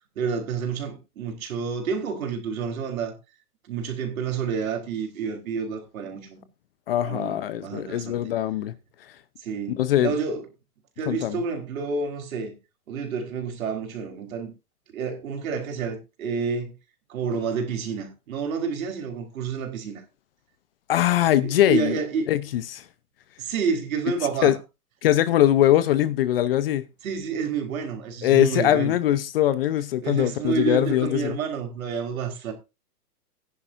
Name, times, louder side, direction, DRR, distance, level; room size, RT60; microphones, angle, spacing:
voice 1, 0.2-3.1 3.7-6.4 7.0-8.3 9.4-10.5 11.0-12.6 12.9-14.5 14.9-16.7 17.1-20.0 21.3-22.3 23.4-24.5 27.0-29.0 30.0-32.5, right 5 dB, 60° right, 3.9 m, -29 dB
voice 2, 6.9-8.7 9.7-10.1 11.1-11.4 20.9-22.0 22.3-22.8 24.4-24.5 25.0-26.8 28.2-31.4, left 12 dB, 40° left, 0.7 m, -21 dB
16.0 x 10.0 x 2.6 m
hypercardioid pair, 150°, 47 cm